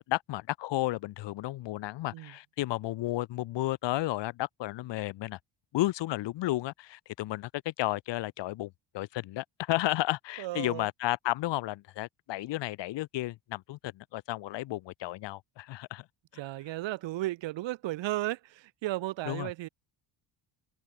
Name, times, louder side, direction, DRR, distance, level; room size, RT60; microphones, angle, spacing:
voice 1, 0.1-5.4 5.7-16.0 19.3-19.5, left 16 dB, 70° left, 3.0 m, -33 dB
voice 2, 10.4-10.9 16.4-19.7, right 16 dB, 75° right, 8.0 m, -34 dB
open air
cardioid pair, 180°, 44 cm